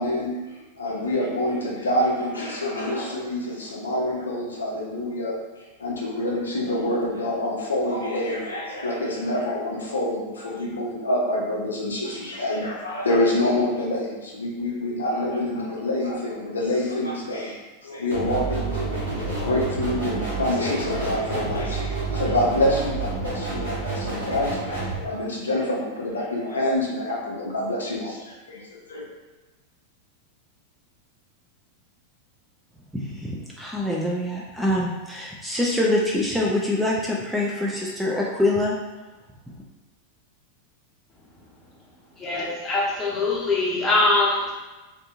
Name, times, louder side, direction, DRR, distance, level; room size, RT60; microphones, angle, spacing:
voice 1, 0.0-5.3 5.8-29.1, left 1 dB, 70° left, -3 dB, 0.5 m, -26 dB
sound 1, 18.1-25.0, right 3 dB, 70° right, 1.0 m, -29 dB
voice 2, 33.2-38.7, left 1 dB, 5° right, -4 dB, 0.3 m, -24 dB
voice 3, 42.2-44.6, left 2 dB, 20° left, -6 dB, 0.9 m, -22 dB
2.6 x 2.5 x 2.4 m, 1.1 s
figure-of-eight pair, 90°, 0 cm